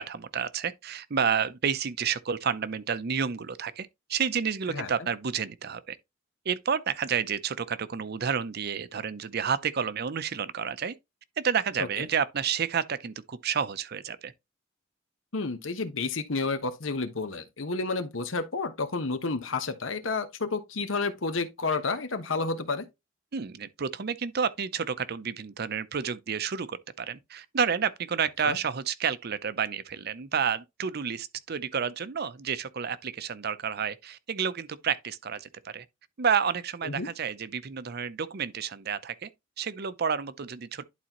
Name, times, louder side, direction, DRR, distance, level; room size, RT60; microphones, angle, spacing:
voice 1, 0.0-6.0 6.4-10.9 11.4-14.3 23.3-35.9 36.2-39.3 39.6-40.8, right 7 dB, 55° right, 0.6 m, -30 dB
voice 2, 15.3-22.9 28.4-28.6 36.9-37.1, left 3 dB, 85° left, 1.1 m, -30 dB
11.0 x 4.2 x 2.9 m
head